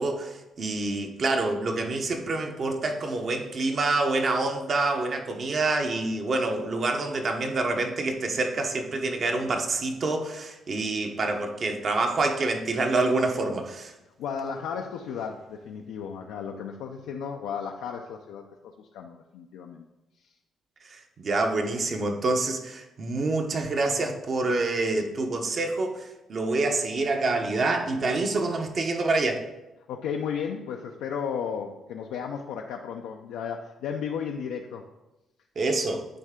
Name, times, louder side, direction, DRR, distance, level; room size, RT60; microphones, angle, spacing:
voice 1, 0.0-13.9 20.8-29.4 35.6-36.1, right 3 dB, 50° right, 4 dB, 0.9 m, -27 dB
voice 2, 14.2-19.8 20.2-20.4 29.9-34.9, left 7 dB, 90° left, 2 dB, 0.4 m, -34 dB
9.0 x 3.3 x 3.7 m, 0.97 s
cardioid pair, 90°, 0 cm